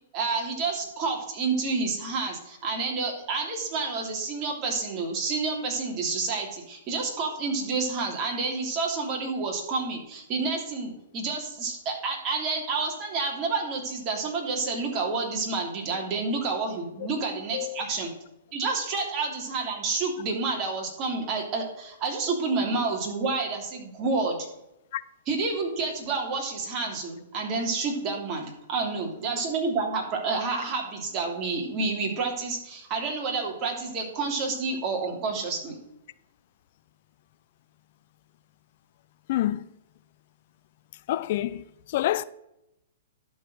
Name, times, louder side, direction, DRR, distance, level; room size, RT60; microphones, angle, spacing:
voice 1, 0.1-18.1 18.5-24.4 25.3-35.8, right 4 dB, 30° right, 3.1 m, -29 dB
voice 2, 17.5-17.8 24.9-25.0 39.3-39.7 41.1-42.2, left 14 dB, 55° left, 0.4 m, -27 dB
12.0 x 4.7 x 7.8 m
hypercardioid pair, 135°, 0 cm